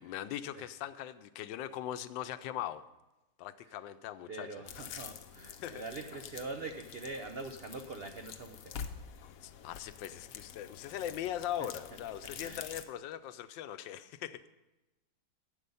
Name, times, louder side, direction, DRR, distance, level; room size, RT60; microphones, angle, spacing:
voice 1, 0.0-2.8 3.4-4.5 5.6-5.8 9.4-14.4, left 11 dB, 85° left, 13 dB, 1.3 m, -40 dB
voice 2, 4.3-8.7 11.6-11.7 12.4-12.6, right 3 dB, 75° right, 5 dB, 0.5 m, -43 dB
sound 1, 4.7-12.8, left 7 dB, 60° left, 0.9 m, -47 dB
12.0 x 8.2 x 5.4 m, 1.0 s
omnidirectional pair, 2.0 m